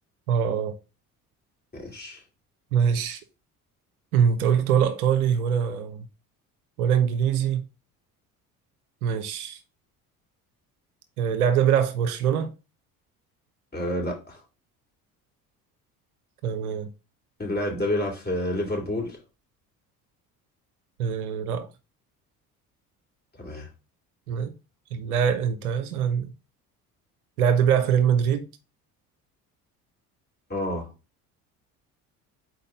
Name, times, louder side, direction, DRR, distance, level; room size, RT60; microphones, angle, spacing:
voice 1, 0.3-0.8 2.7-3.2 4.1-6.1 6.8-7.6 9.0-9.6 11.2-12.5 16.4-16.9 21.0-21.7 24.3-24.5 24.9-26.3 27.4-28.5, right 8 dB, 80° right, 0.8 m, -23 dB
voice 2, 1.7-2.2 13.7-14.4 17.4-19.2 23.4-23.7 30.5-30.9, left 1 dB, 20° left, 3.3 m, -29 dB
4.4 x 4.0 x 5.2 m
hypercardioid pair, 60°, 44 cm